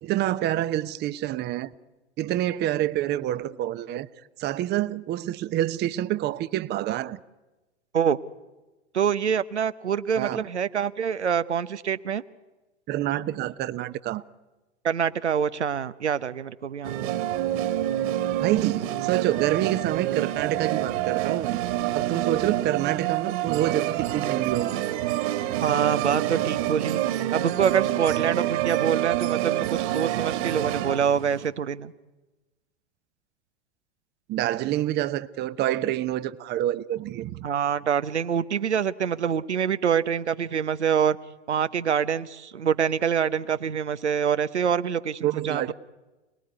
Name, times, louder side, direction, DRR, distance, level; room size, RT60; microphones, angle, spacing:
voice 1, 0.0-1.7 2.2-4.1 4.4-7.2 10.2-10.5 12.9-14.2 18.4-21.6 21.9-24.7 34.3-37.5 45.2-45.7, right 13 dB, 30° right, 0.9 m, -27 dB
voice 2, 8.9-12.2 14.8-17.0 25.6-31.9 37.4-41.2 41.5-45.7, right 7 dB, 75° right, 0.9 m, -25 dB
sound 1, 16.8-31.5, right 13 dB, 50° right, 2.2 m, -27 dB
29.0 x 20.0 x 9.7 m
figure-of-eight pair, 90°, 34 cm